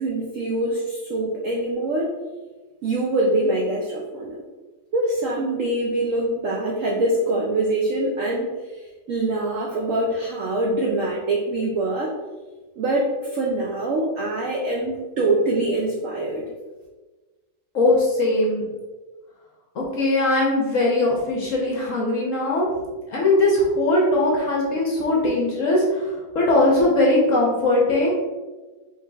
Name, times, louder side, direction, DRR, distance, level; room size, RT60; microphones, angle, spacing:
voice 1, 0.0-2.1 2.8-4.4 4.9-8.8 9.1-12.1 12.8-16.5, right 2 dB, 80° right, -1 dB, 0.7 m, -24 dB
voice 2, 17.7-18.7 19.7-22.7 23.1-28.1, left 2 dB, 55° left, -3 dB, 0.9 m, -20 dB
5.6 x 3.1 x 2.3 m, 1.2 s
omnidirectional pair, 2.0 m